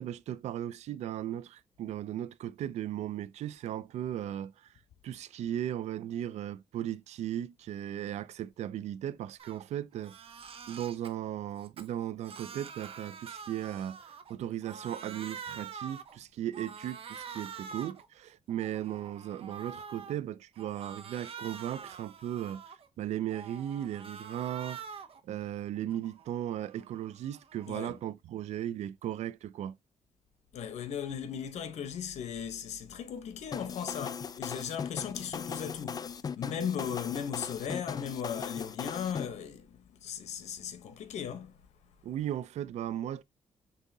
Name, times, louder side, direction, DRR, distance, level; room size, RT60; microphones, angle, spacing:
voice 1, 0.0-4.7 5.0-10.2 10.7-24.8 25.2-29.8 42.0-43.2, right 11 dB, 80° right, 0.4 m, -37 dB
Crying sobbing, 9.4-9.6 9.9-11.1 11.6-14.4 14.6-16.2 16.5-18.1 18.5-20.2 20.6-22.9 23.3-25.2 25.6-28.0, right 6 dB, 55° right, 0.7 m, -46 dB
voice 2, 27.7-28.0 30.5-36.1 36.4-41.5, left 8 dB, 80° left, 0.9 m, -37 dB
sound 1, 33.5-39.3, left 6 dB, 35° left, 0.4 m, -38 dB
5.4 x 3.6 x 2.7 m
cardioid pair, 110°, 11 cm